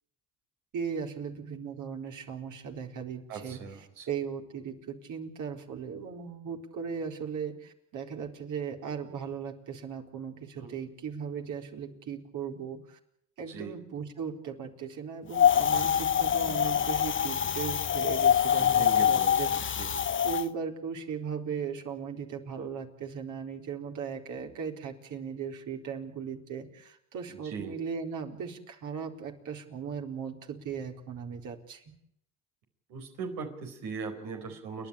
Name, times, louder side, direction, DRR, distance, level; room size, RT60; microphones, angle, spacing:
voice 1, 0.7-13.0 13.4-19.7 20.2-31.9, right 7 dB, 65° right, 3 dB, 4.2 m, -37 dB
voice 2, 3.3-4.1 10.6-10.7 13.5-13.7 18.6-19.9 27.4-27.7 32.9-34.9, right 5 dB, 85° right, 3 dB, 4.5 m, -39 dB
Wind, 15.3-20.4, left 9 dB, 35° left, 0.9 m, -25 dB
30.0 x 11.0 x 10.0 m, 0.74 s
supercardioid pair, 75°, 33 cm